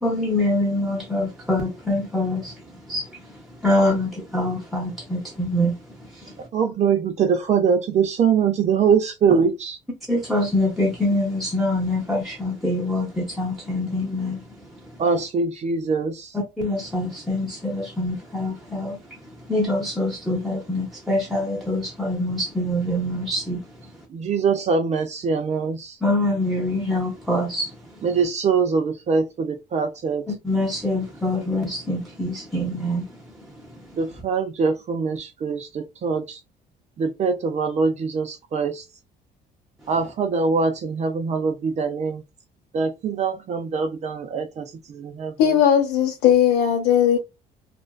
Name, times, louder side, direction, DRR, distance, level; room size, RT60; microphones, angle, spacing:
voice 1, 0.0-6.4 10.1-14.8 16.3-19.0 19.4-23.7 26.0-27.7 30.3-34.0, left 1 dB, ahead, 0.7 m, -25 dB
voice 2, 6.5-9.8 15.0-16.3 24.1-26.0 28.0-30.3 34.0-36.4 37.0-38.8 39.9-42.2 42.7-45.5, right 5 dB, 40° right, 0.5 m, -23 dB
voice 3, 45.4-47.2, left 9 dB, 85° left, 0.7 m, -18 dB
2.5 x 2.2 x 2.2 m
cardioid pair, 110°, 17 cm